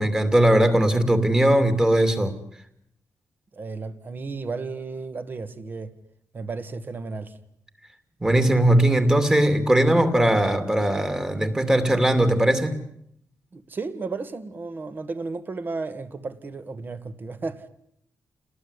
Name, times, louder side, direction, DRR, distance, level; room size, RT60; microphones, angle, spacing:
voice 1, 0.0-2.3 8.2-12.7, right 1 dB, 10° right, 2.7 m, -19 dB
voice 2, 3.5-6.0 6.3-7.4 13.5-17.7, right 4 dB, 35° right, 1.9 m, -33 dB
30.0 x 20.0 x 9.9 m
wide cardioid pair, 165°, 6 cm